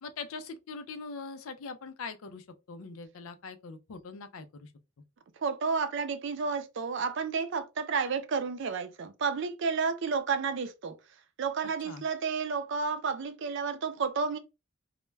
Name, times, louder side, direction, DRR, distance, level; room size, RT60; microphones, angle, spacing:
voice 1, 0.0-4.7 11.9-12.0, left 4 dB, 90° left, 0.4 m, -42 dB
voice 2, 5.4-11.0 11.4-14.4, right 5 dB, 60° right, 0.4 m, -31 dB
2.2 x 2.1 x 3.2 m
head